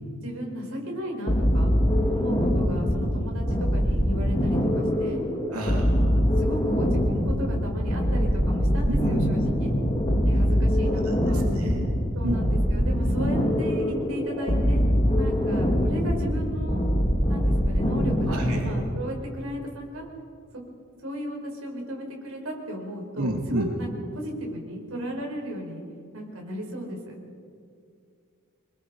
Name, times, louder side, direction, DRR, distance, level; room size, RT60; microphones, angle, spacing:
voice 1, 0.2-1.7 2.1-5.2 5.7-9.7 10.2-11.4 12.1-14.8 15.2-16.8 17.3-20.0 20.5-20.6 21.0-25.8 26.1-27.1, equal, 65° right, 0 dB, 5.0 m, -35 dB
sound 1, 1.3-18.9, equal, 25° left, 2.2 m, -23 dB
voice 2, 5.5-6.2 8.9-9.2 10.8-12.0 12.2-12.4 18.3-18.7 23.2-23.7, right 1 dB, 85° right, 0 dB, 3.0 m, -30 dB
26.5 x 21.5 x 5.1 m, 2.3 s
head